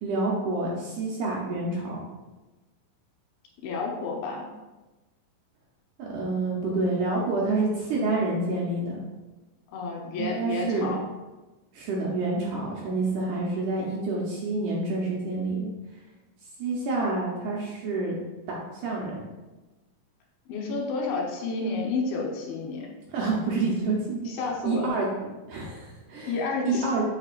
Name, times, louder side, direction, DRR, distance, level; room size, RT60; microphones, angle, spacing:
voice 1, 0.0-2.0 6.0-9.0 10.2-10.9 11.7-15.7 16.6-18.2 18.5-19.2 23.1-24.3 24.6-25.1 25.5-26.4 26.6-27.0, right 3 dB, 70° right, -3 dB, 2.0 m, -28 dB
voice 2, 3.6-4.5 9.7-11.0 13.4-13.5 20.5-22.9 24.3-25.0 26.3-26.9, left 3 dB, 80° left, -1 dB, 2.9 m, -30 dB
6.6 x 5.8 x 2.5 m, 1.1 s
omnidirectional pair, 4.3 m